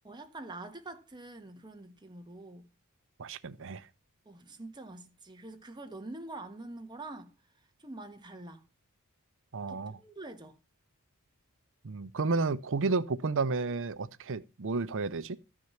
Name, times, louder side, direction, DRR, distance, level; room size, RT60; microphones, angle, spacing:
voice 1, 0.0-2.7 4.2-7.3 7.8-8.6 9.7-10.6, right 2 dB, 20° right, 1.4 m, -45 dB
voice 2, 3.2-3.8 9.5-9.9 11.8-15.4, right 3 dB, 60° right, 0.7 m, -31 dB
13.5 x 6.4 x 5.7 m
head